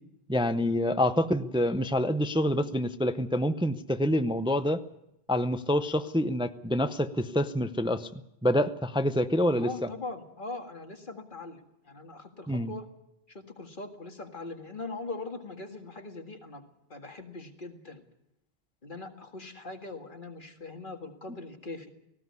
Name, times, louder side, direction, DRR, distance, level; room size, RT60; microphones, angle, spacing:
voice 1, 0.3-4.8 5.3-8.1 8.4-9.7 12.5-12.7, left 1 dB, 5° right, 10 dB, 0.6 m, -27 dB
voice 2, 9.5-12.9 13.3-16.6 16.9-18.0 18.8-21.9, left 3 dB, 50° left, 4 dB, 2.0 m, -41 dB
18.5 x 15.5 x 9.6 m, 0.85 s
omnidirectional pair, 1.1 m